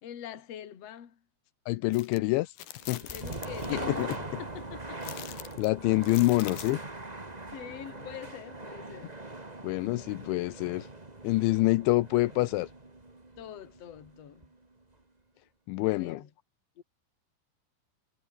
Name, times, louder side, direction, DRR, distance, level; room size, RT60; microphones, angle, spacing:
voice 1, 0.0-1.2 2.9-5.4 7.5-9.1 13.4-14.5 15.8-16.3 16.8-16.9, left 10 dB, 45° left, 2.6 m, -45 dB
voice 2, 1.7-2.5 2.9-3.0 3.7-4.2 5.6-6.8 9.6-10.9 11.2-12.7 15.7-16.2, left 20 dB, 85° left, 3.0 m, -26 dB
sound 1, 1.9-2.2 2.6-4.2 5.0-6.8, left 13 dB, 65° left, 3.0 m, -44 dB
sound 2, 2.8-14.7, right 2 dB, 85° right, 0.3 m, -42 dB
omnidirectional pair, 5.6 m